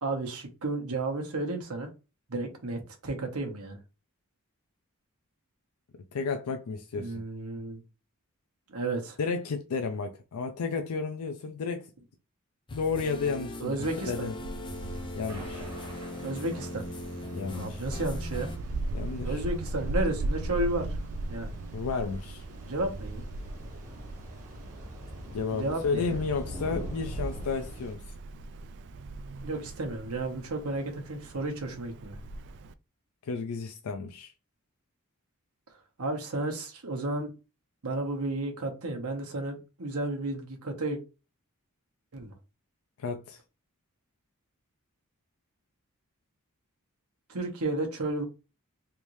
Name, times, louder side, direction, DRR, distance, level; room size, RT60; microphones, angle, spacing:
voice 1, 0.0-1.9 2.3-3.8 6.9-7.8 8.7-9.2 13.6-14.3 16.2-16.8 17.5-18.5 19.2-21.0 21.3-21.6 22.7-23.2 25.5-26.2 29.4-32.2 36.0-37.3 37.8-41.0 42.1-42.3 47.3-48.2, right 2 dB, 80° right, 1.1 m, -32 dB
voice 2, 6.1-7.2 9.2-11.9 12.7-14.3 15.2-15.6 17.3-17.8 18.9-19.4 21.7-22.4 25.3-28.1 33.2-34.3 43.0-43.4, left 4 dB, 80° left, 0.4 m, -32 dB
sound 1, 12.7-18.6, left 1 dB, 20° left, 0.5 m, -40 dB
Wind, 14.1-32.7, right 2 dB, 55° right, 0.3 m, -38 dB
Thunder / Rain, 14.7-27.9, equal, 35° right, 1.6 m, -46 dB
3.4 x 2.6 x 3.1 m
head